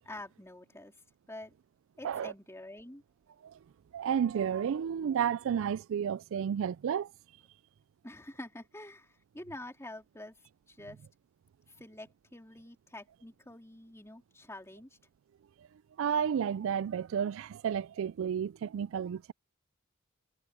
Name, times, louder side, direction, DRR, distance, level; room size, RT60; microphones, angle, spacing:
voice 1, 0.0-0.9 1.3-1.5 2.0-3.0 8.0-10.4 10.7-11.0 11.8-15.0, left 1 dB, 15° left, 3.4 m, -47 dB
voice 2, 3.9-7.1 16.0-19.3, right 8 dB, 65° right, 0.3 m, -31 dB
head